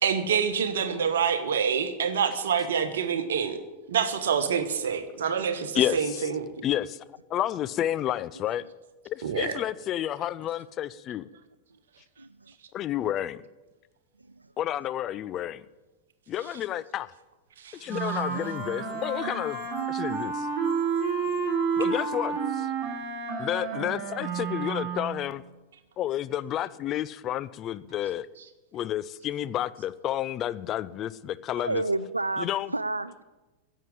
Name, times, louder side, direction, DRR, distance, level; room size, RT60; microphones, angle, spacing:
voice 1, 0.0-3.6 3.9-6.5 9.2-9.5 17.6-17.7, right 7 dB, 65° right, 10 dB, 1.2 m, -26 dB
voice 2, 5.7-6.3 6.6-7.0 7.3-8.6 9.0-11.3 12.7-13.4 14.6-15.6 16.3-17.1 17.7-20.5 21.8-22.7 23.4-25.4 26.0-28.3 28.7-31.8 32.4-32.7, left 12 dB, 30° left, 15 dB, 0.4 m, -30 dB
Wind instrument woodwind instrument, 17.9-25.3, right 6 dB, 30° right, 3.3 m, -30 dB
sound 1, 18.1-22.5, left 10 dB, 55° left, 1.1 m, -43 dB
voice 3, 31.6-33.2, right 2 dB, 80° right, 16 dB, 0.3 m, -29 dB
10.5 x 7.4 x 9.6 m, 1.1 s
figure-of-eight pair, 90°, 0 cm